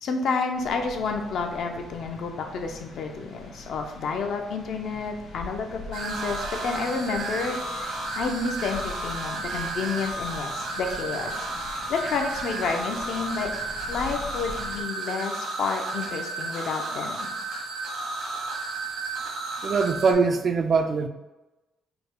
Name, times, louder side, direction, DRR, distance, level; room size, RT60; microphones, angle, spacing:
voice 1, 0.0-13.5 13.9-17.3, left 4 dB, 60° left, 3 dB, 0.6 m, -30 dB
sound 1, 0.5-14.8, left 3 dB, 80° left, 1.0 m, -43 dB
sound 2, 5.9-20.1, right 2 dB, 75° right, 1.0 m, -33 dB
voice 2, 19.6-21.1, right 4 dB, 40° right, 8 dB, 0.3 m, -22 dB
5.1 x 2.2 x 4.6 m, 1.0 s
cardioid pair, 150°, 0 cm